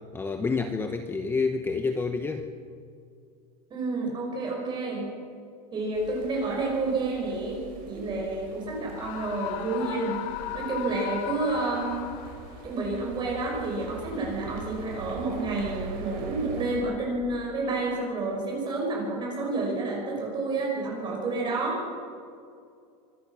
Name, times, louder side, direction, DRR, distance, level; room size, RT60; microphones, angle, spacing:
voice 1, 0.1-2.5, left 4 dB, 10° left, 6 dB, 0.9 m, -28 dB
voice 2, 3.7-5.1 5.7-7.6 7.9-10.2 10.5-12.1 12.6-21.8, right 3 dB, 20° right, -1 dB, 6.6 m, -29 dB
sound 1, 5.9-16.8, right 4 dB, 45° right, 6.9 m, -43 dB
Screaming, 8.9-12.6, left 13 dB, 50° left, 1.3 m, -36 dB
25.0 x 21.0 x 6.1 m, 2.4 s
supercardioid pair, 155°, 20 cm